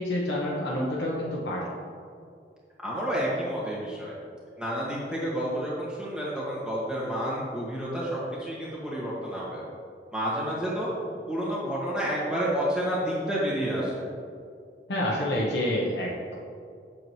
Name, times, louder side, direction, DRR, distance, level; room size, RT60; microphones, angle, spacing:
voice 1, 0.0-1.7 14.9-16.4, left 1 dB, 70° left, -5 dB, 0.9 m, -28 dB
voice 2, 2.8-4.2 4.6-9.6 10.1-10.9 11.3-14.0, equal, 5° right, -7 dB, 1.8 m, -30 dB
7.8 x 7.0 x 3.1 m, 2.3 s
head